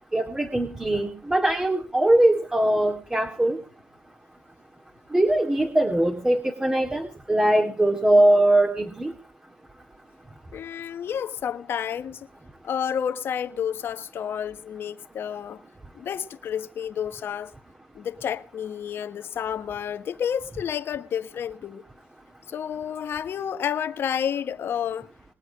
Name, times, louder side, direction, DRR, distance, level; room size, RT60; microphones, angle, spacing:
voice 1, 0.1-3.6 5.1-9.1, right 1 dB, 20° right, 2.3 m, -21 dB
voice 2, 10.5-12.3 12.6-15.6 15.9-17.5 17.9-21.8 22.5-25.1, left 8 dB, 70° left, 1.2 m, -30 dB
21.5 x 8.1 x 5.2 m
supercardioid pair, 50°, 4 cm